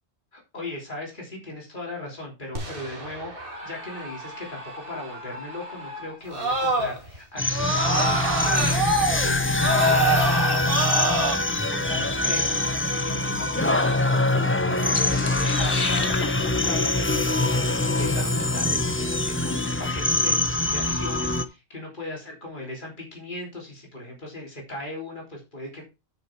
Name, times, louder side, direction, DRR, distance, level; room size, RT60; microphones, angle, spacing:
voice 1, 0.3-3.3 3.6-11.2 11.7-12.6 12.9-25.8, left 2 dB, 45° left, -1 dB, 3.7 m, -38 dB
Screaming, 2.5-7.2 7.5-11.3, right 1 dB, 55° right, 2.6 m, -27 dB
sound 1, 7.4-21.4, left 2 dB, 15° left, 0.7 m, -24 dB
sound 2, 14.9-19.2, left 5 dB, 70° left, 1.5 m, -35 dB
9.3 x 6.5 x 4.5 m, 0.26 s
omnidirectional pair, 1.1 m